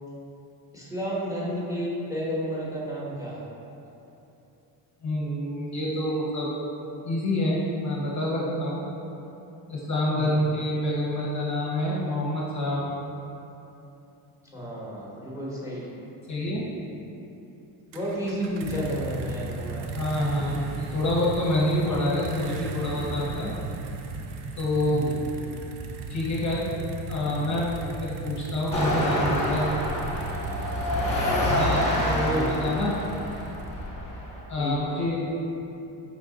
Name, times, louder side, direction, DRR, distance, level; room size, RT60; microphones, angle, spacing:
voice 1, 0.7-3.4 10.1-10.4 14.5-15.9 17.9-19.9 24.9-25.4 32.3-32.5 34.6-35.0, equal, 5° right, -6 dB, 1.0 m, -32 dB
voice 2, 5.0-6.5 7.0-8.8 9.7-12.9 16.3-16.6 19.9-23.5 24.6-25.1 26.1-26.6 27.1-27.7 28.0-29.7 31.5-33.0 34.5-35.2, left 1 dB, 35° left, -5 dB, 0.7 m, -27 dB
sound 1, 17.9-33.9, right 3 dB, 70° right, 0.6 m, -36 dB
sound 2, 28.7-34.4, left 1 dB, 15° left, 1.1 m, -27 dB
5.0 x 2.4 x 3.7 m, 2.9 s
supercardioid pair, 90°, 47 cm